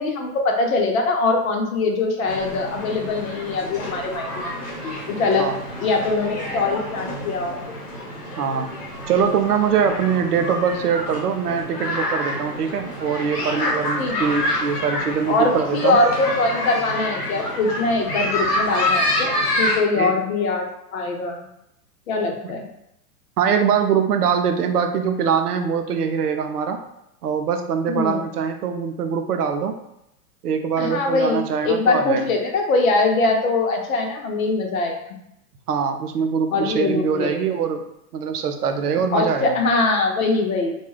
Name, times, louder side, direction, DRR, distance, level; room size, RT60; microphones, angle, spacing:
voice 1, 0.0-4.5 4.8-5.5 5.8-7.6 14.0-14.2 15.3-21.4 22.1-22.7 27.9-28.2 30.8-35.0 36.5-37.5 39.1-40.8, left 3 dB, 60° left, 2 dB, 0.8 m, -22 dB
sound 1, 2.3-19.8, left 1 dB, 85° left, 1.1 m, -27 dB
voice 2, 8.4-8.8 9.1-16.0 20.0-20.1 23.4-26.8 27.2-29.8 30.4-32.3 35.7-37.8 38.1-39.5, right 7 dB, 75° right, 6 dB, 0.6 m, -23 dB
2.3 x 2.3 x 3.1 m, 0.81 s
hypercardioid pair, 105°, 46 cm